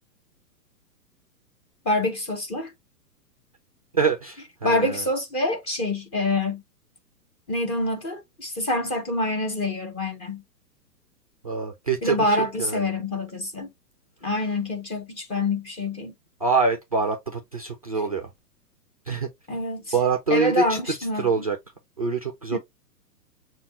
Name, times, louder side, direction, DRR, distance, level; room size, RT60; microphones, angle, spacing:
voice 1, 1.8-2.7 4.6-6.6 7.5-10.4 12.0-13.7 14.2-16.1 19.5-20.0 20.3-21.5 22.5-22.6, left 2 dB, 10° left, 0.7 m, -26 dB
voice 2, 3.9-5.0 11.4-12.8 16.4-18.3 19.1-19.3 19.9-21.6 22.0-22.6, right 4 dB, 25° right, 0.3 m, -25 dB
7.0 x 2.4 x 3.0 m
hypercardioid pair, 145°, 48 cm